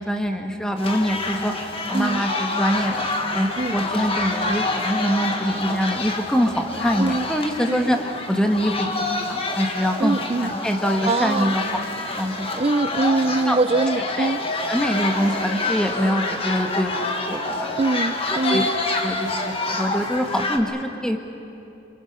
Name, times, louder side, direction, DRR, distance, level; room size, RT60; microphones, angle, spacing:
voice 1, 0.0-3.1 3.3-8.0 8.3-10.2 10.4-11.6 12.0-12.5 13.5-13.6 14.2-14.3 14.7-17.7 18.3-18.6 19.0-21.2, equal, 5° left, 4 dB, 1.6 m, -24 dB
sound 1, 0.8-20.6, left 2 dB, 30° left, 1.7 m, -27 dB
voice 2, 1.9-2.3 3.6-3.8 7.0-7.3 7.7-8.0 10.0-10.5 11.1-11.6 12.6-14.4 17.8-18.7, right 3 dB, 30° right, 14 dB, 0.5 m, -23 dB
29.0 x 26.0 x 5.7 m, 2.8 s
head